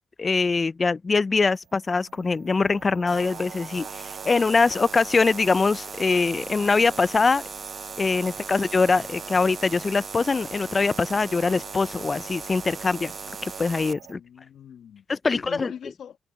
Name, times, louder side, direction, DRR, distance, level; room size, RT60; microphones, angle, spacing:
voice 1, 0.2-7.4 8.0-13.1 13.4-14.2 15.1-15.7, left 4 dB, 35° left, 0.4 m, -23 dB
sound 1, 1.3-14.1, right 10 dB, 70° right, 5.3 m, -48 dB
sound 2, 3.1-13.9, right 5 dB, 40° right, 0.4 m, -38 dB
voice 2, 14.1-16.2, left 8 dB, 65° left, 1.5 m, -42 dB
supercardioid pair, 65°, 0 cm